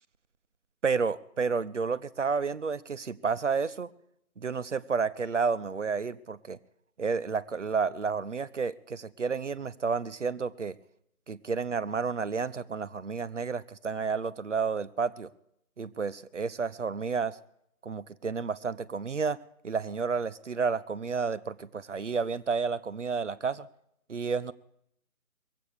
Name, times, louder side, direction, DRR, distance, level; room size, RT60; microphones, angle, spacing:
voice 1, 0.8-3.9 4.4-6.6 7.0-10.8 11.3-15.3 15.8-17.4 17.8-19.4 19.6-23.7 24.1-24.5, right 5 dB, 55° right, 15 dB, 0.7 m, -31 dB
21.5 x 8.4 x 6.6 m, 0.76 s
figure-of-eight pair, 175°, 43 cm